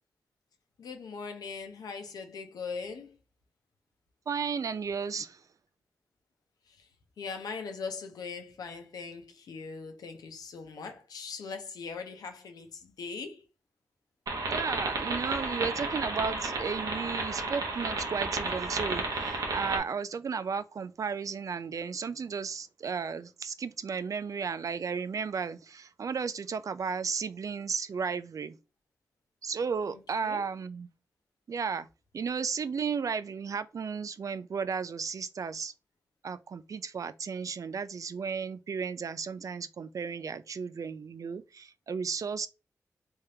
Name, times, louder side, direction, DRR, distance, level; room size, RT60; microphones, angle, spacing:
voice 1, 0.8-3.2 6.7-6.9 7.2-13.4 29.9-30.4, left 5 dB, 85° left, 0.8 m, -40 dB
voice 2, 4.3-5.4 14.5-28.6 29.4-30.9 31.5-31.9 32.1-35.7 36.2-42.5, right 6 dB, 60° right, 0.4 m, -34 dB
sound 1, 14.3-19.8, right 3 dB, 80° right, 1.0 m, -32 dB
3.6 x 3.4 x 2.8 m
cardioid pair, 45°, 6 cm